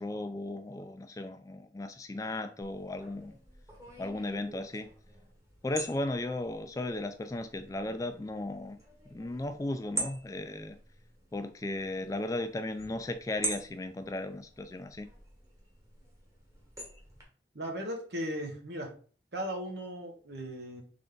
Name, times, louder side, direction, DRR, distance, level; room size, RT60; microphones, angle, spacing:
voice 1, 0.0-3.4 4.0-4.9 5.6-8.8 9.1-10.8 11.3-15.1, left 2 dB, 20° left, 8 dB, 0.3 m, -36 dB
sound 1, 2.6-17.2, right 2 dB, 20° right, 1.2 m, -44 dB
voice 2, 17.5-18.9 19.3-20.8, equal, 75° right, 2 dB, 1.1 m, -37 dB
3.8 x 3.4 x 3.8 m, 0.42 s
head